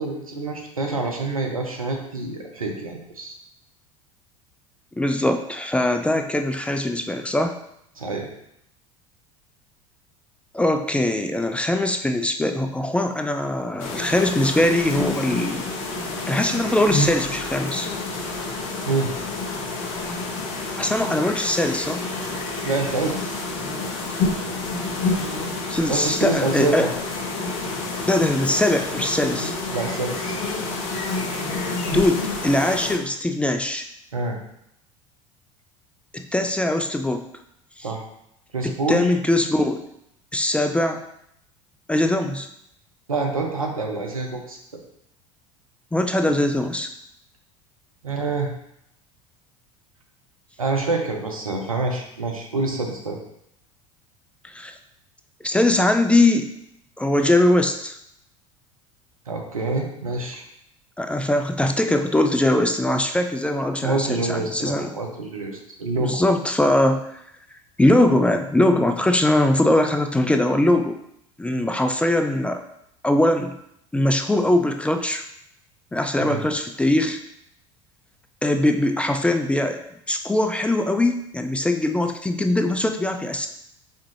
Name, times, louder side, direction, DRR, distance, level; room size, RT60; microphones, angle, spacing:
voice 1, 0.0-3.4 8.0-8.3 18.9-19.1 22.6-23.1 25.9-26.9 29.7-30.3 34.1-34.4 37.8-38.0 38.5-39.1 43.1-44.6 48.0-48.5 50.6-53.2 59.3-60.4 63.8-66.1 76.2-76.4, right 3 dB, 90° right, 2 dB, 0.7 m, -26 dB
voice 2, 5.0-7.6 10.5-15.7 16.3-17.9 20.8-22.1 25.7-26.9 28.1-29.5 31.9-33.9 36.1-37.2 37.8-37.9 38.9-39.8 40.3-41.0 41.9-42.5 45.9-46.9 54.4-54.8 55.4-56.5 57.0-58.0 61.0-64.9 65.9-67.2 67.8-70.9 71.4-72.6 73.0-73.5 73.9-75.2 75.9-77.2 78.4-79.8 80.1-83.5, left 1 dB, 5° left, 6 dB, 0.3 m, -21 dB
sound 1, 13.8-33.0, left 2 dB, 60° left, 0.9 m, -28 dB
4.4 x 3.6 x 3.2 m, 0.76 s
figure-of-eight pair, 75°, 17 cm